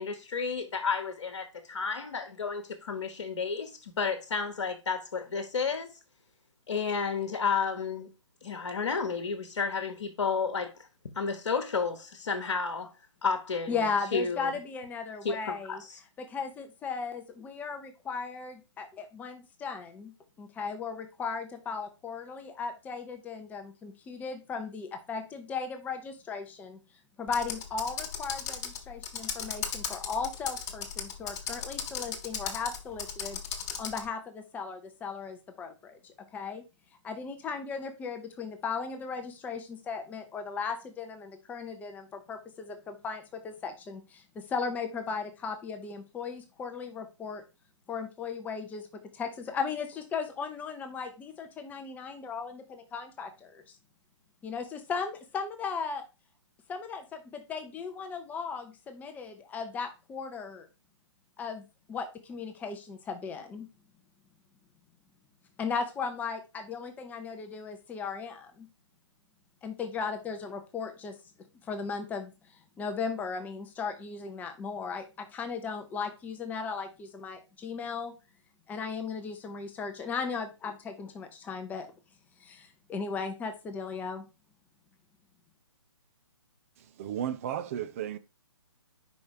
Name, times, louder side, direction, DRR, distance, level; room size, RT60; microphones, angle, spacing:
voice 1, 0.0-6.0 6.7-8.1 8.4-10.9 11.1-12.9 13.2-14.5 15.2-16.0, left 5 dB, 55° left, 1.3 m, -32 dB
voice 2, 13.7-15.8 16.2-20.1 20.4-26.8 27.2-33.4 33.8-36.6 37.0-47.4 47.9-53.6 54.4-56.1 56.7-60.7 61.4-63.7 65.6-68.7 69.6-71.2 71.6-72.3 72.8-78.1 78.7-81.9 82.4-84.3, left 5 dB, 10° left, 0.7 m, -36 dB
Computer keyboard, 27.3-34.1, left 7 dB, 35° left, 1.4 m, -36 dB
voice 3, 86.8-88.2, right 10 dB, 30° right, 0.5 m, -34 dB
5.2 x 5.1 x 4.7 m
figure-of-eight pair, 130°, 16 cm